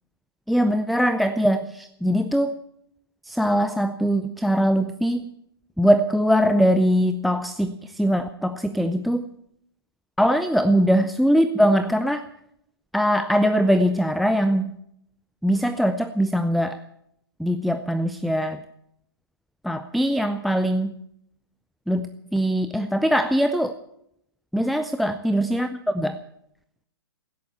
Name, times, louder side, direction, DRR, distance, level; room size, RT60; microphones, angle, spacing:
voice 1, 0.5-2.5 3.2-5.2 5.8-9.3 10.2-12.2 12.9-14.8 15.4-16.8 17.4-18.6 19.6-20.9 21.9-23.7 24.5-26.2, equal, ahead, 10 dB, 0.5 m, -21 dB
16.0 x 10.5 x 8.5 m, 0.76 s
figure-of-eight pair, 125°, 13 cm